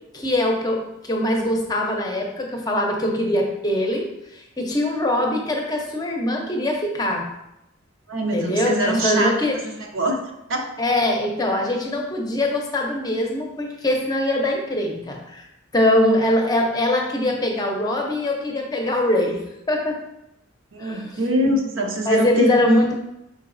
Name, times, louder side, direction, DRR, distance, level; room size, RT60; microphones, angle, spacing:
voice 1, 0.1-4.1 4.6-7.3 8.3-9.6 10.8-15.5 15.7-19.4 19.7-20.0 20.8-21.1 22.1-22.9, left 1 dB, 20° left, 1 dB, 0.6 m, -22 dB
voice 2, 8.1-10.2 10.5-10.6 20.7-22.9, right 1 dB, 85° right, 1 dB, 0.8 m, -24 dB
5.3 x 3.9 x 2.6 m, 0.86 s
head